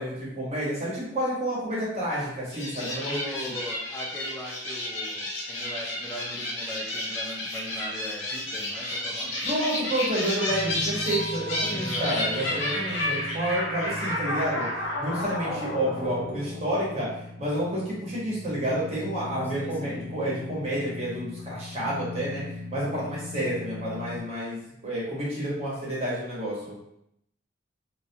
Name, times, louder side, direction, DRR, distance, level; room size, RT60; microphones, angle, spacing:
voice 1, 0.0-3.3 9.4-14.7 15.0-17.1 17.4-22.4 22.7-26.7, right 1 dB, 35° right, -7 dB, 1.0 m, -30 dB
sound 1, 2.5-17.1, left 1 dB, 70° left, 0.7 m, -31 dB
voice 2, 2.8-9.5 11.7-12.3 19.4-20.0, equal, 10° left, -2 dB, 0.4 m, -40 dB
sound 2, 10.4-24.2, left 2 dB, 60° right, 1.0 m, -39 dB
2.2 x 2.2 x 2.7 m, 0.78 s
head